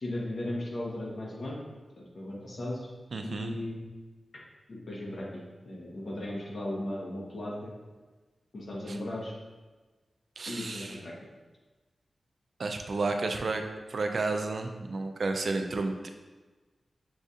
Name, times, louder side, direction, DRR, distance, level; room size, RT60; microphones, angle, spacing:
voice 1, 0.0-1.6 2.0-2.9 3.2-3.9 4.7-7.7 8.5-9.3 10.5-11.1, left 1 dB, 65° left, -4 dB, 1.1 m, -36 dB
voice 2, 3.1-3.5 8.9-9.0 10.4-11.0 12.6-13.6 13.9-16.1, right 3 dB, 65° right, 5 dB, 0.4 m, -31 dB
6.1 x 2.6 x 2.4 m, 1.3 s
wide cardioid pair, 70°, 0 cm